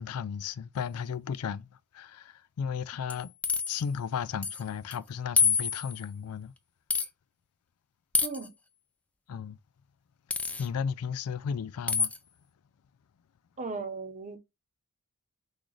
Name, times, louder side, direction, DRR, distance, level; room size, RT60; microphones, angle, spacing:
voice 1, 0.0-1.7 1.9-3.3 3.7-6.5 9.3-9.6 10.6-12.1, left 7 dB, 90° left, 0.4 m, -34 dB
sound 1, 3.1-3.8 4.4-4.6 4.9-5.0 5.4-6.0 6.9-7.1 8.1-8.5 10.3-10.7 11.9-12.2, left 5 dB, 5° left, 0.4 m, -27 dB
voice 2, 8.2-8.5 13.6-14.4, right 4 dB, 35° right, 0.8 m, -37 dB
6.2 x 2.4 x 3.1 m
head